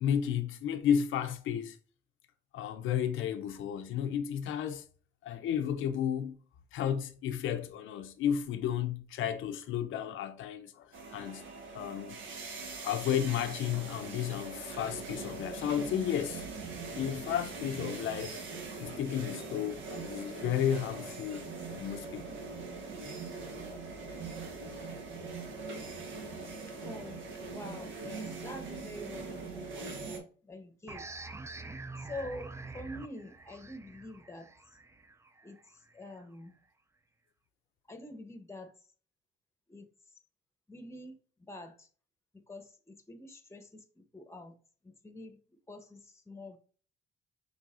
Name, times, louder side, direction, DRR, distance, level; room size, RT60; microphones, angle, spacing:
voice 1, 0.0-1.8 2.5-4.8 5.2-6.4 6.7-11.4 11.7-12.2 12.8-16.5 17.0-18.4 18.8-22.4, left 9 dB, 80° left, 0.5 m, -33 dB
sound 1, 10.9-30.2, right 4 dB, 75° right, 1.3 m, -42 dB
voice 2, 26.8-27.2 27.5-31.1 32.0-34.5 35.4-35.6 35.9-36.5 37.9-38.7 39.7-39.9 40.7-41.2 41.5-41.9 42.5-44.6 44.8-45.4 45.7-46.6, left 1 dB, 15° left, 1.0 m, -46 dB
sound 2, 30.9-36.2, right 3 dB, 15° right, 0.4 m, -46 dB
6.2 x 3.3 x 2.5 m
cardioid pair, 90°, 20 cm